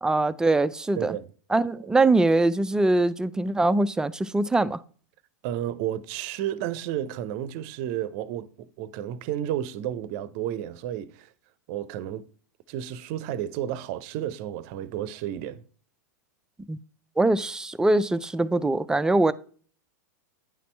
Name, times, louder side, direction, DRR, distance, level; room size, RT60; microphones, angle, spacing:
voice 1, 0.0-1.2 1.5-4.8 16.7-16.8 17.2-19.3, right 2 dB, 5° right, 0.3 m, -22 dB
voice 2, 1.0-1.3 5.4-11.3 11.7-12.2 12.7-15.6, right 11 dB, 45° right, 0.6 m, -32 dB
9.5 x 4.2 x 4.4 m
hypercardioid pair, 100°, 10 cm